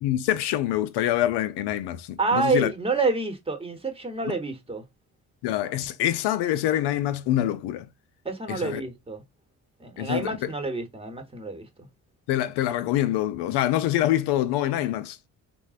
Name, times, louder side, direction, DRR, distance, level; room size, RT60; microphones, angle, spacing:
voice 1, 0.0-2.7 4.2-4.3 5.4-7.9 8.5-8.8 10.0-10.5 12.3-15.3, left 13 dB, 70° left, 0.5 m, -25 dB
voice 2, 2.2-4.8 8.2-9.2 9.8-11.7, right 3 dB, 15° right, 1.0 m, -28 dB
3.9 x 2.1 x 2.4 m
hypercardioid pair, 50°, 43 cm